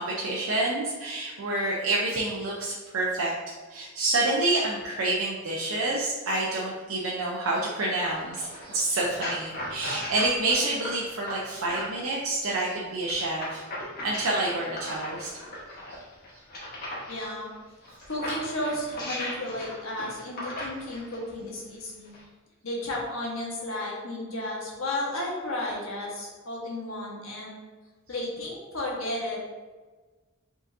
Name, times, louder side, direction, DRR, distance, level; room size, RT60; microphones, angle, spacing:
voice 1, 0.0-3.3 3.7-13.6 14.0-15.3 15.9-16.0, right 2 dB, 85° right, -4 dB, 0.7 m, -28 dB
sound 1, 8.1-12.1 13.1-17.3 17.8-21.2 22.0-22.2, left 1 dB, 45° left, 1.2 m, -37 dB
voice 2, 17.1-17.5 18.1-22.1 22.6-27.6 28.1-29.4, left 1 dB, 70° left, -3 dB, 1.3 m, -33 dB
5.2 x 3.8 x 2.6 m, 1.3 s
head